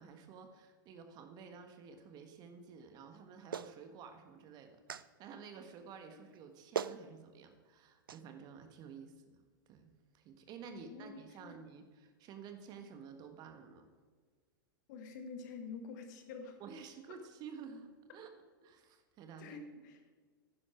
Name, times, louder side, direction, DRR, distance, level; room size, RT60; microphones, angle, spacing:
voice 1, 0.0-9.9 10.1-13.9 16.6-18.3 18.6-19.6, right 6 dB, 35° right, 7 dB, 1.4 m, -52 dB
Clapping, 3.5-3.7 4.9-5.1 6.3-6.4 6.7-7.0 8.1-8.2, right 7 dB, 85° right, 0.4 m, -38 dB
voice 2, 10.7-11.6 14.9-16.6 19.4-20.0, left 4 dB, 55° left, 5 dB, 1.8 m, -47 dB
11.0 x 9.9 x 4.5 m, 1.5 s
hypercardioid pair, 105°, 11 cm